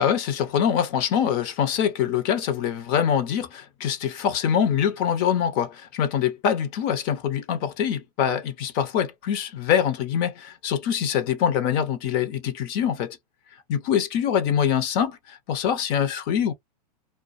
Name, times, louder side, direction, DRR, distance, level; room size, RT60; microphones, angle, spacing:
voice 1, 0.0-13.2 13.7-16.5, left 8 dB, 45° left, 0.7 m, -24 dB
2.2 x 2.1 x 2.6 m
hypercardioid pair, 125°, 21 cm